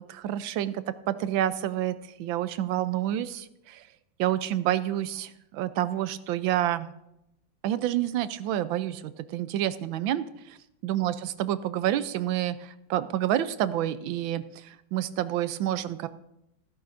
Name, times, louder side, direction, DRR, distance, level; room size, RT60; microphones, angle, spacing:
voice 1, 0.0-3.8 4.2-6.9 7.6-9.0 9.3-10.2 10.8-16.1, right 12 dB, 85° right, 13 dB, 1.4 m, -28 dB
14.5 x 13.5 x 2.6 m, 0.84 s
omnidirectional pair, 2.1 m